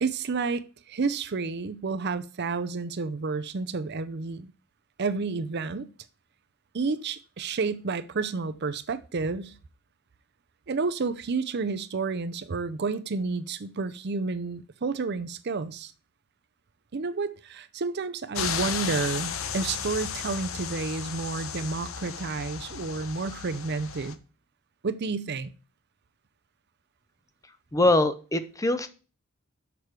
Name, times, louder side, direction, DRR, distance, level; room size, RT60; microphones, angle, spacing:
voice 1, 0.0-4.5 5.0-5.9 6.7-9.5 10.7-15.9 16.9-24.2 24.8-25.5, right 4 dB, 50° right, 0.6 m, -30 dB
sound 1, 18.4-24.1, left 7 dB, 80° left, 0.8 m, -34 dB
voice 2, 27.7-28.9, left 2 dB, 15° left, 0.6 m, -23 dB
6.7 x 6.0 x 4.7 m
head